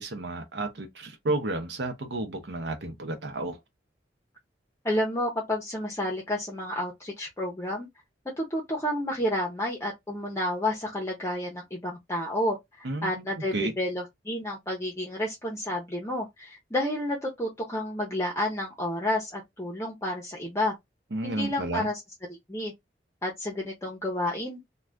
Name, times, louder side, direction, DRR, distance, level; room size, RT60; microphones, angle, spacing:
voice 1, 0.0-3.6 12.8-13.2 13.5-13.7 21.1-21.9, right 2 dB, 85° right, 0.7 m, -32 dB
voice 2, 4.8-7.9 8.4-20.7 21.2-22.0 22.3-22.7 23.2-24.6, left 1 dB, 15° left, 0.7 m, -30 dB
2.4 x 2.3 x 3.3 m
head